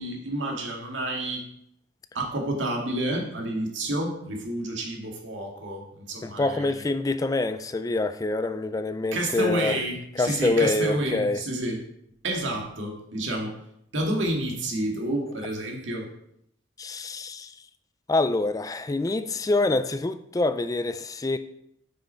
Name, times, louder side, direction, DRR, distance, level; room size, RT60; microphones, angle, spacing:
voice 1, 0.0-1.4 2.1-6.7 9.1-11.8 12.2-13.5 13.9-16.1, right 1 dB, 90° right, 1.9 m, -29 dB
voice 2, 6.2-9.8 10.1-11.4 16.8-17.6 18.1-21.4, left 2 dB, 20° left, 0.3 m, -26 dB
9.0 x 5.6 x 4.4 m
head